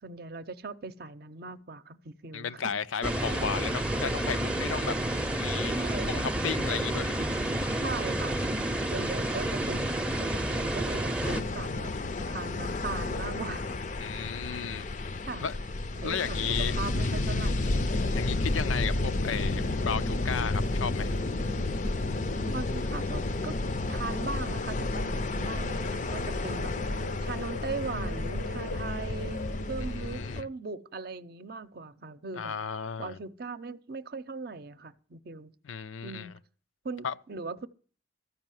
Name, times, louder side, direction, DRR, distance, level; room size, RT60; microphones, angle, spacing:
voice 1, 0.0-2.7 4.0-4.1 5.7-6.3 7.8-11.9 12.3-13.7 14.1-14.7 15.3-15.5 16.0-17.7 18.5-18.6 22.5-23.6 23.9-29.4 29.7-32.6 33.0-35.5 36.0-36.3 36.8-37.7, right 4 dB, 50° right, 0.6 m, -39 dB
voice 2, 2.3-4.9 5.3-7.3 14.0-14.9 15.4-15.5 16.0-16.7 18.1-21.1 29.8-30.5 32.4-33.2 35.6-36.3 37.0-37.1, left 7 dB, 90° left, 0.5 m, -34 dB
sound 1, 3.0-11.4, right 1 dB, 5° right, 0.6 m, -30 dB
sound 2, 11.2-30.4, left 2 dB, 40° left, 0.5 m, -32 dB
sound 3, 17.6-30.2, left 1 dB, 75° left, 0.9 m, -36 dB
14.0 x 5.5 x 9.1 m
head